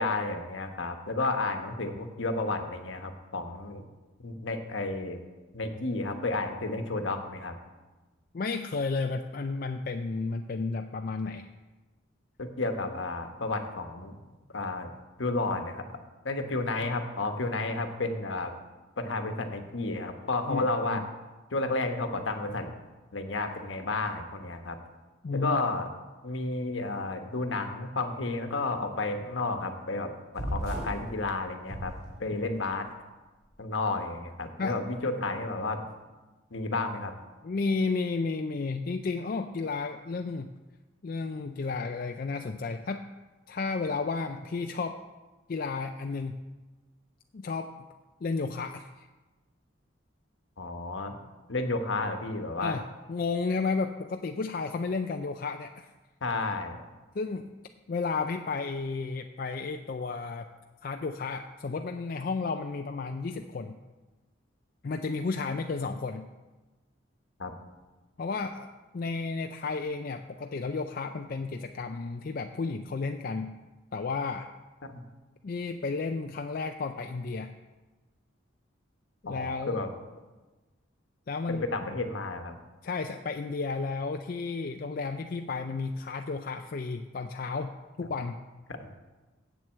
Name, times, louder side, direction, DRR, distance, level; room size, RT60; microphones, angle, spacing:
voice 1, 0.0-3.8 4.2-5.2 5.5-7.6 12.4-14.2 14.5-14.9 15.2-15.8 16.2-18.5 19.0-21.0 21.5-22.8 23.1-24.8 25.3-25.9 26.2-31.9 32.2-32.9 33.6-35.8 36.5-37.1 50.6-51.2 51.5-52.8 56.2-56.8 67.4-67.5 74.8-75.0 79.3-79.9 81.5-82.5 88.7-88.9, left 2 dB, 70° left, 6 dB, 1.1 m, -31 dB
voice 2, 8.3-11.5 20.5-21.1 25.2-25.6 32.3-32.6 34.6-34.8 37.4-40.5 41.0-43.0 43.5-45.0 45.5-46.4 47.3-47.7 48.2-49.1 52.6-55.9 57.1-57.5 57.9-60.5 60.8-63.8 64.8-66.3 68.2-73.6 73.9-74.5 75.4-77.5 79.2-79.8 81.3-81.7 82.8-88.4, left 4 dB, 45° left, 5 dB, 0.4 m, -32 dB
sound 1, 30.4-31.1 31.6-32.6, equal, 50° right, 2.6 m, -35 dB
8.1 x 7.6 x 7.4 m, 1.2 s
head